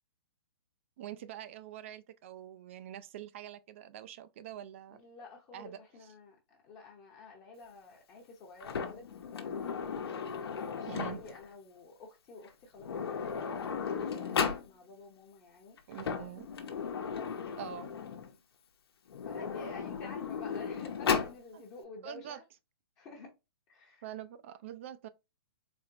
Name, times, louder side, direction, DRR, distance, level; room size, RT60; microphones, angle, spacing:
voice 1, 1.0-5.0 5.5-5.8 10.9-11.2 15.9-16.5 17.6-17.9 21.5-21.6 22.0-22.4 24.0-25.1, right 10 dB, 30° right, 0.3 m, -44 dB
voice 2, 4.9-9.7 10.3-16.0 17.1-17.7 18.0-18.4 19.2-22.4 23.0-23.3 23.7-24.1, left 3 dB, 20° left, 0.8 m, -51 dB
Sliding door, 8.6-11.5 12.4-12.5 12.8-14.7 15.8-18.3 19.1-21.4, left 6 dB, 70° left, 1.0 m, -35 dB
4.3 x 3.0 x 2.6 m
hypercardioid pair, 160°, 13 cm